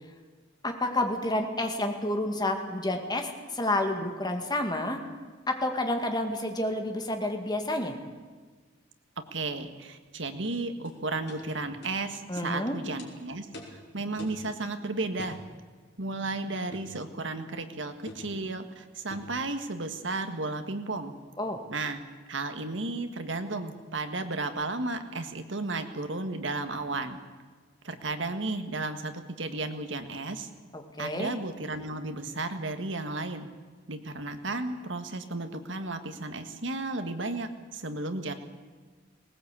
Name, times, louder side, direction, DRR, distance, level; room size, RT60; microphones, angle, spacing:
voice 1, 0.6-5.0 5.5-8.0 12.3-12.8 21.4-21.6 30.7-31.3, left 1 dB, 20° left, 4 dB, 2.2 m, -29 dB
voice 2, 9.3-15.4 16.0-21.1 21.7-22.0 22.3-27.2 27.8-30.5 31.0-33.5 33.9-38.3, right 2 dB, 75° right, 8 dB, 1.7 m, -34 dB
sound 1, 10.9-11.0 11.3-11.4 11.8-12.0 12.4-12.5 13.0-13.1 13.5-13.8 14.2-14.4 15.2-15.4 16.7-17.0 18.1-18.3 19.1-19.4, left 1 dB, 60° left, 4.8 m, -44 dB
19.5 x 19.0 x 8.4 m, 1.4 s
head